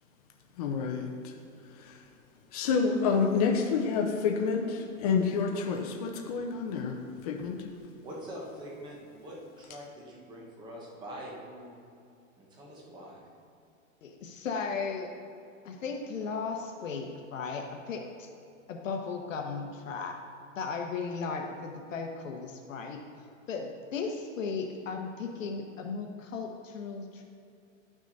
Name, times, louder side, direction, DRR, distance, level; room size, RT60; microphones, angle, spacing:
voice 1, 0.6-1.3 1.8-2.0 2.5-7.0 7.2-7.7, left 5 dB, 30° left, 2 dB, 0.6 m, -28 dB
voice 2, 8.0-11.8 12.4-13.3, equal, 10° right, -3 dB, 1.1 m, -44 dB
voice 3, 14.0-15.1 15.6-18.3 18.7-20.2 20.6-23.0 23.5-27.3, left 5 dB, 70° left, 3 dB, 1.1 m, -36 dB
10.5 x 6.2 x 4.0 m, 2.5 s
hypercardioid pair, 160°, 40 cm